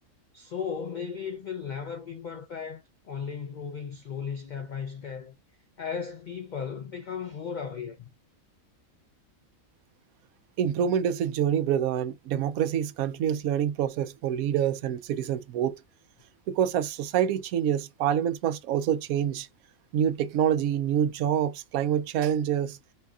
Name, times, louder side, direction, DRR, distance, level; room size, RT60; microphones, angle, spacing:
voice 1, 0.3-5.4 5.8-8.1, left 6 dB, 80° left, 0.4 m, -36 dB
voice 2, 10.6-15.8 16.5-19.5 19.9-22.8, right 9 dB, 85° right, 1.0 m, -26 dB
4.4 x 3.6 x 2.3 m
omnidirectional pair, 1.5 m